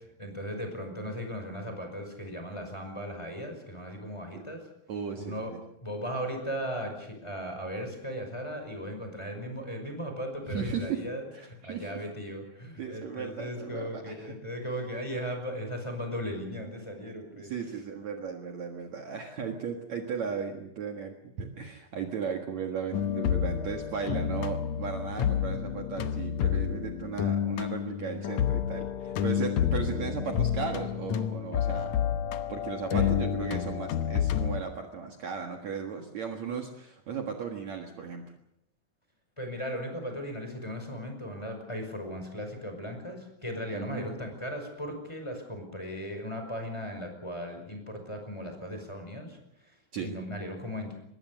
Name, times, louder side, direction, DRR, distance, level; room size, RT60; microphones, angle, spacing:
voice 1, 0.2-4.7 5.2-5.5 5.8-17.5 32.9-33.1 39.4-50.9, equal, 5° left, 4 dB, 5.3 m, -37 dB
voice 2, 4.9-5.6 10.5-11.0 11.3-12.0 12.8-14.4 17.4-31.9 32.5-38.3 43.7-44.1 49.9-50.1, right 6 dB, 55° right, 3 dB, 2.7 m, -36 dB
sound 1, 22.9-34.6, left 9 dB, 65° left, 1.9 m, -29 dB
25.0 x 21.0 x 6.7 m, 0.78 s
omnidirectional pair, 4.2 m